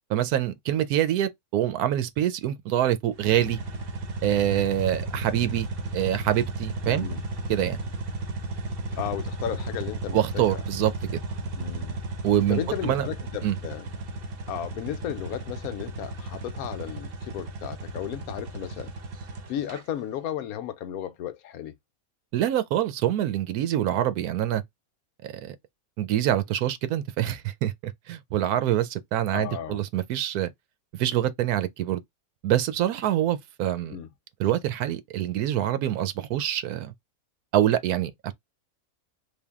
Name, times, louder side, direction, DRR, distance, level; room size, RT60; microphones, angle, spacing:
voice 1, 0.1-3.6 4.2-5.7 5.9-7.1 7.5-7.8 10.1-11.2 12.2-13.1 13.4-13.6 22.3-24.6 25.2-25.6 26.0-30.5 30.9-32.0 32.4-34.0 34.4-36.9 37.5-38.3, right 12 dB, 80° right, 1.1 m, -25 dB
sound 1, 3.1-19.8, right 2 dB, 50° right, 0.8 m, -34 dB
voice 2, 6.9-7.2 9.0-10.6 11.6-12.0 12.5-13.9 14.5-18.9 19.5-21.7 29.3-29.8 33.9-34.1, left 10 dB, 75° left, 1.1 m, -34 dB
3.4 x 2.6 x 3.5 m
omnidirectional pair, 1.6 m